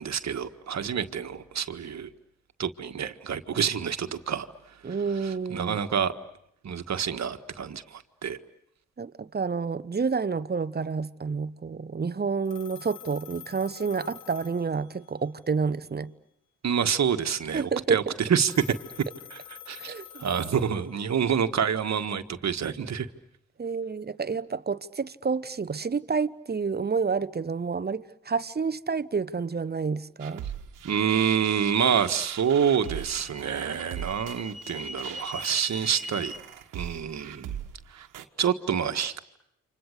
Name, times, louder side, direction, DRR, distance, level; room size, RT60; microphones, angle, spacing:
voice 1, 0.0-2.1 2.6-6.1 6.6-8.4 16.6-18.7 19.3-19.4 19.7-23.1 30.8-36.4 36.7-37.6 37.9-38.0 38.4-39.2, right 7 dB, 60° right, 1.7 m, -27 dB
voice 2, 4.8-5.8 9.0-16.1 17.5-18.0 19.8-20.2 23.6-30.4, right 5 dB, 30° right, 1.1 m, -29 dB
Telephone, 12.5-15.3 18.5-21.3, left 10 dB, 85° left, 1.2 m, -47 dB
sound 1, 30.2-38.2, right 10 dB, 80° right, 1.5 m, -41 dB
sound 2, 32.3-36.4, left 1 dB, 45° left, 5.6 m, -41 dB
29.5 x 26.0 x 6.7 m
supercardioid pair, 50°, 31 cm